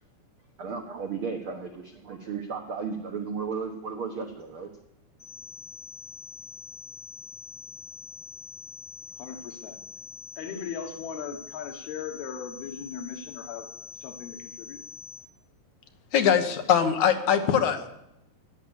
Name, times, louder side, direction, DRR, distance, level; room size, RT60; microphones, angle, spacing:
voice 1, 0.6-4.7, right 5 dB, 75° right, 4 dB, 1.2 m, -34 dB
sound 1, 5.2-15.2, left 9 dB, 35° left, 6.1 m, -45 dB
voice 2, 9.2-9.8 10.4-13.7 14.0-14.8, left 6 dB, 85° left, 6 dB, 3.5 m, -38 dB
voice 3, 16.1-18.0, left 8 dB, 60° left, 7 dB, 2.3 m, -22 dB
16.0 x 10.5 x 7.2 m, 0.83 s
omnidirectional pair, 4.3 m